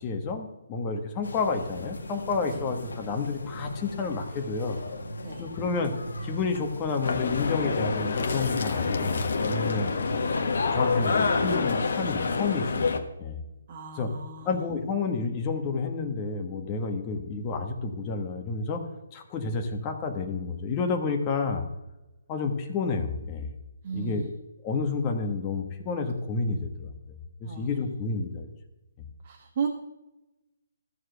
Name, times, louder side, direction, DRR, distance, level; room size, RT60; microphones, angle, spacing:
voice 1, 0.0-4.8 5.4-5.9 6.2-9.9 10.7-12.9 13.2-13.4 13.9-14.1 14.4-18.8 19.1-21.7 22.3-23.5 23.9-24.3 24.6-28.5, left 4 dB, 25° left, 3 dB, 1.5 m, -30 dB
sound 1, 1.2-12.3, left 1 dB, 80° left, 1.8 m, -39 dB
sound 2, 7.0-13.0, left 4 dB, 65° left, 1.3 m, -27 dB
voice 2, 11.1-11.5 13.7-14.6 23.8-24.3 27.4-27.9 29.2-29.7, right 6 dB, 45° right, 2 dB, 1.4 m, -35 dB
14.0 x 4.8 x 7.9 m, 0.98 s
hypercardioid pair, 150°, 0 cm